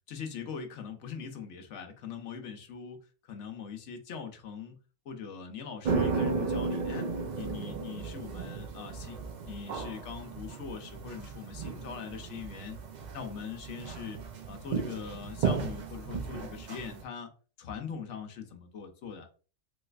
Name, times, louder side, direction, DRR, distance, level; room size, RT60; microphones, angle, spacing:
voice 1, 0.1-3.0 3.3-4.8 5.1-12.8 13.1-14.2 14.5-17.3 17.6-19.3, left 6 dB, 65° left, 5 dB, 0.9 m, -42 dB
sound 1, 5.8-17.0, right 4 dB, 75° right, 0.4 m, -34 dB
3.2 x 3.2 x 2.3 m, 0.37 s
omnidirectional pair, 1.4 m